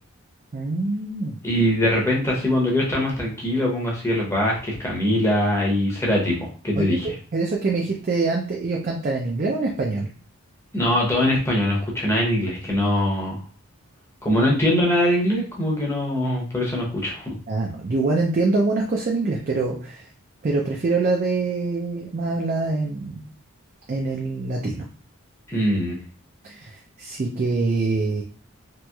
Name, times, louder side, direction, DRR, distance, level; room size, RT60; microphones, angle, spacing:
voice 1, 0.5-1.4 6.8-7.0 7.3-10.1 17.5-20.1 20.4-23.2 23.9-24.7 26.4-28.2, right 3 dB, 40° right, 0 dB, 0.3 m, -24 dB
voice 2, 1.4-6.4 6.6-7.2 10.7-13.4 14.2-17.3 25.5-26.0, left 1 dB, 10° left, -3 dB, 0.7 m, -22 dB
2.9 x 2.9 x 2.2 m, 0.40 s
head